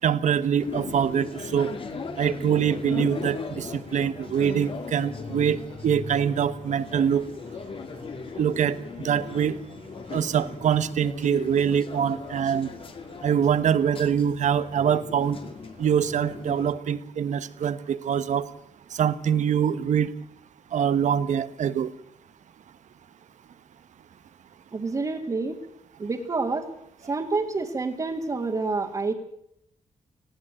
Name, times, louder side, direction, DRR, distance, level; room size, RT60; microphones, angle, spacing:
voice 1, 0.0-1.7 2.2-5.6 5.8-7.2 8.4-8.8 9.0-9.6 10.1-12.7 13.2-15.4 15.8-18.5 18.9-20.1 20.7-21.9, right 8 dB, 80° right, 14 dB, 1.3 m, -24 dB
sound 1, 0.6-16.7, left 5 dB, 45° left, 2.2 m, -38 dB
voice 2, 24.7-25.6 26.0-26.7 27.0-29.1, right 3 dB, 30° right, 0 dB, 2.1 m, -28 dB
19.0 x 16.5 x 9.0 m, 0.75 s
wide cardioid pair, 165°, 12 cm